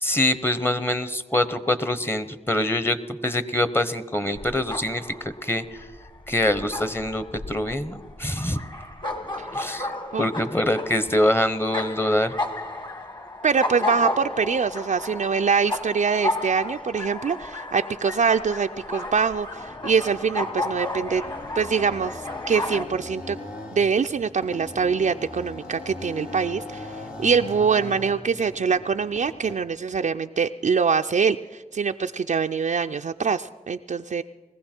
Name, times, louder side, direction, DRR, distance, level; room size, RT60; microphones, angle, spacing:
voice 1, 0.0-3.0 3.2-5.1 5.4-5.9 6.3-8.6 9.5-12.3, left 1 dB, 15° left, 13 dB, 0.9 m, -24 dB
sound 1, 4.3-22.8, left 2 dB, 30° left, 1.7 m, -33 dB
voice 2, 13.4-21.2 21.6-22.2 22.5-23.4 23.7-26.9 27.2-34.2, right 6 dB, 60° right, 6 dB, 0.4 m, -24 dB
sound 2, 19.5-29.6, left 1 dB, 80° left, 2.5 m, -40 dB
21.0 x 15.0 x 4.4 m, 1.3 s
cardioid pair, 55°, 14 cm